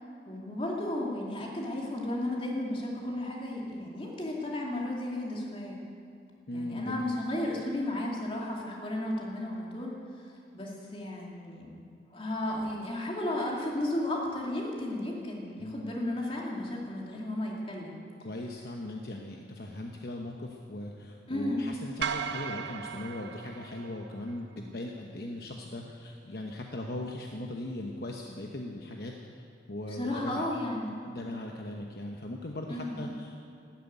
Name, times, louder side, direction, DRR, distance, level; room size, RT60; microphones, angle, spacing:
voice 1, 0.3-5.8 6.5-9.9 10.5-11.7 12.1-18.0 21.3-21.6 29.9-30.9 32.7-33.0, left 1 dB, 30° left, -2 dB, 2.6 m, -34 dB
voice 2, 6.5-7.0 15.6-15.8 18.2-29.1 29.7-30.4 31.0-33.4, left 1 dB, 55° left, 1 dB, 1.1 m, -39 dB
sound 1, 22.0-24.4, right 7 dB, 75° right, 0.6 m, -36 dB
13.0 x 12.0 x 9.1 m, 2.5 s
head